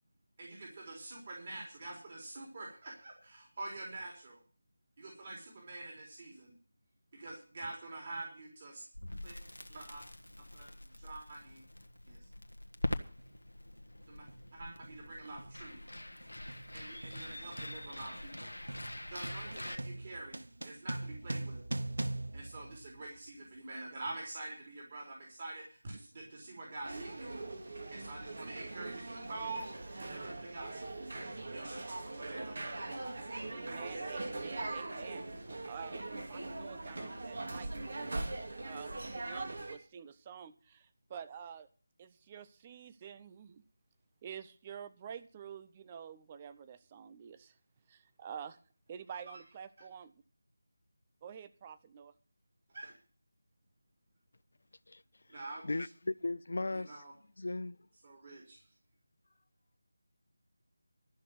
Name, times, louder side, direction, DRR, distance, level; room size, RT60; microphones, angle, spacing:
voice 1, 0.4-4.4 5.0-6.5 7.1-8.9 9.2-9.4 9.7-10.0 10.5-11.6 12.1-12.2 14.1-15.8 16.7-18.5 19.1-21.6 22.3-31.0 31.5-34.5 52.7-52.9 55.3-55.9 56.7-57.1 58.0-58.6, right 2 dB, 35° right, 3.9 m, -46 dB
Crackle, 8.9-19.8, left 1 dB, 85° left, 1.4 m, -44 dB
sound 1, 13.2-13.4 14.3-14.6 14.8-23.4, right 2 dB, 70° right, 0.7 m, -42 dB
sound 2, 26.8-39.8, right 2 dB, 55° right, 2.5 m, -41 dB
voice 2, 33.5-35.3 35.6-38.0 38.6-41.7 42.0-43.6 44.2-47.6 47.9-48.6 48.9-50.1 51.2-52.1, right 8 dB, 20° right, 0.6 m, -48 dB
voice 3, 55.6-57.0 57.4-57.8, left 2 dB, 60° left, 0.5 m, -36 dB
13.5 x 6.2 x 9.3 m
figure-of-eight pair, 165°, 0 cm